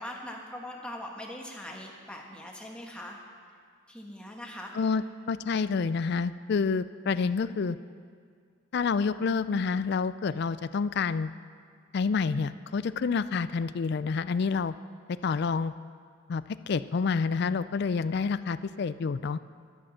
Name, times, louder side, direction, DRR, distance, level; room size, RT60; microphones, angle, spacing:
voice 1, 0.0-3.2 3.9-4.9 7.1-7.5, left 1 dB, 5° left, -1 dB, 1.3 m, -42 dB
voice 2, 4.8-7.8 8.7-11.3 11.9-14.7 15.1-15.7 16.3-19.4, left 5 dB, 50° left, 15 dB, 0.3 m, -28 dB
13.0 x 10.5 x 6.3 m, 2.1 s
head